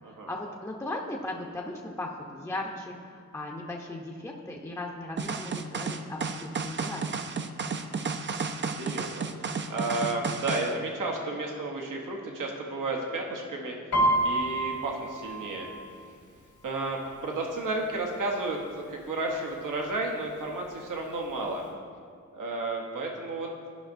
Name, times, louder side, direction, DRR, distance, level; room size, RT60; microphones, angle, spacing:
voice 1, 0.0-7.4, left 2 dB, 10° left, -1 dB, 0.6 m, -37 dB
sound 1, 5.2-10.7, right 5 dB, 40° right, 0.4 m, -32 dB
voice 2, 8.6-13.8 14.2-15.7 16.6-21.6 22.3-23.5, right 2 dB, 80° right, 0 dB, 1.0 m, -32 dB
Piano, 13.9-17.6 17.9-18.3 18.7-19.3 19.9-20.0 20.2-21.3 21.6-21.7, right 1 dB, 70° left, 1.7 m, -29 dB
11.0 x 5.3 x 2.6 m, 2.2 s
cardioid pair, 60°, 31 cm